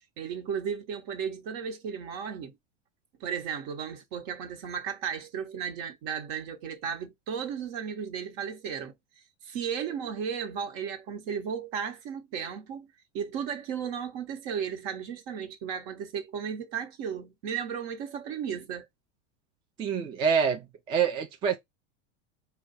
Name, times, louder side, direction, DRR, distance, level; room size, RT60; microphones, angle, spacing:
voice 1, 0.2-2.5 3.2-8.9 9.4-12.9 13.1-18.9, right 7 dB, 45° right, 1.2 m, -34 dB
voice 2, 19.8-21.6, right 7 dB, 15° right, 0.3 m, -26 dB
4.5 x 2.4 x 4.0 m
supercardioid pair, 145°, 35 cm